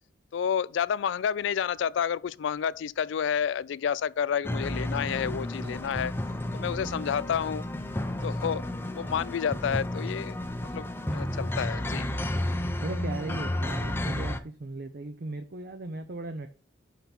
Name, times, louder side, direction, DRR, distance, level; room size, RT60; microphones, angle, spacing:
voice 1, 0.3-6.1 6.5-7.6 8.2-8.6 9.0-10.4 10.7-10.8 11.1-12.1, left 8 dB, 75° left, 0.3 m, -29 dB
sound 1, 4.4-14.4, left 1 dB, 10° left, 0.5 m, -32 dB
voice 2, 5.3-5.9 6.7-7.2 12.8-16.5, right 2 dB, 55° right, 0.6 m, -38 dB
5.7 x 5.7 x 5.8 m
head